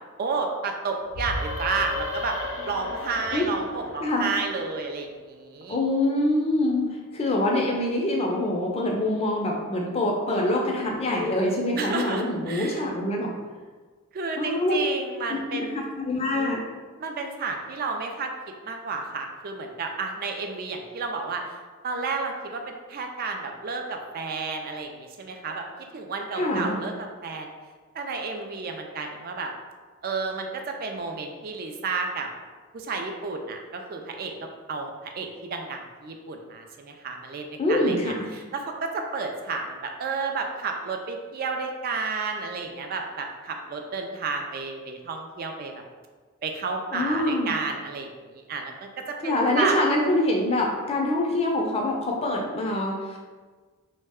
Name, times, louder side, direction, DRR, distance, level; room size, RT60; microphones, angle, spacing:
voice 1, 0.2-2.4 2.7-5.8 11.8-12.8 14.1-15.9 17.0-18.3 18.6-21.4 21.8-25.7 25.9-27.5 27.9-29.5 30.0-32.3 32.7-34.3 34.7-38.0 38.3-45.7 46.4-49.8, right 4 dB, 40° right, 3 dB, 0.3 m, -31 dB
sound 1, 1.1-4.7, left 2 dB, 80° left, 0.5 m, -34 dB
voice 2, 4.0-4.3 5.7-13.3 14.4-14.8 15.3-16.6 26.4-26.8 37.6-38.3 46.9-47.5 49.2-53.2, left 1 dB, 25° left, 0 dB, 0.4 m, -25 dB
3.1 x 2.1 x 3.4 m, 1.4 s
head